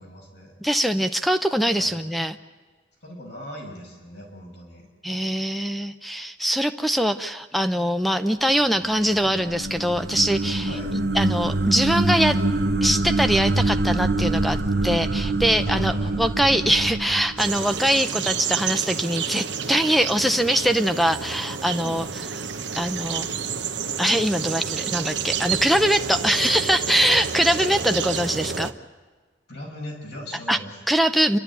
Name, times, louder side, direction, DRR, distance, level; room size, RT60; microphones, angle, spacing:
voice 1, 0.0-0.6 1.7-2.0 3.0-4.9 10.7-10.9 15.7-16.2 21.8-22.1 27.9-28.1 29.5-30.8, equal, 75° left, 0 dB, 5.8 m, -39 dB
voice 2, 0.6-2.4 5.0-10.7 11.1-12.4 12.8-22.1 22.8-23.3 24.0-28.7 30.5-30.6 30.9-31.4, equal, ahead, 9 dB, 0.6 m, -22 dB
sound 1, 8.8-18.1, right 2 dB, 65° right, 0.9 m, -25 dB
sound 2, 17.4-28.7, right 6 dB, 85° right, 0.9 m, -29 dB
28.5 x 12.5 x 8.3 m, 1.4 s
head